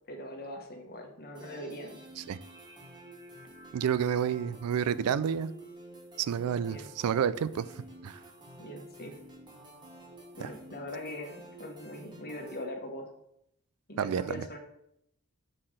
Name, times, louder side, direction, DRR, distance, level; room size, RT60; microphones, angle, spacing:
voice 1, 0.1-2.0 6.6-6.9 8.6-9.1 10.4-13.1 13.9-14.6, left 1 dB, 45° left, 1.2 m, -41 dB
sound 1, 1.3-12.6, right 1 dB, 20° right, 1.3 m, -50 dB
voice 2, 3.7-5.5 6.2-7.7 8.0-8.2 10.4-10.5 14.0-14.4, right 8 dB, 80° right, 0.4 m, -29 dB
6.6 x 3.8 x 6.4 m
head